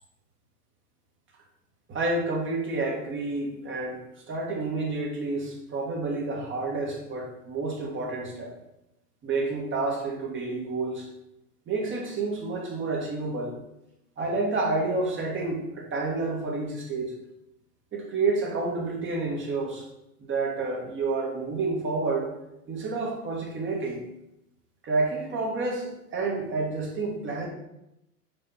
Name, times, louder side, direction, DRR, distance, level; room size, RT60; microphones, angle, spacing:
voice 1, 1.9-8.5 9.2-11.1 11.7-13.5 14.2-17.1 17.9-19.9 20.2-22.3 22.7-24.0 24.8-27.5, right 3 dB, 25° right, 0 dB, 2.1 m, -29 dB
5.4 x 5.0 x 6.0 m, 0.86 s
hypercardioid pair, 100°, 46 cm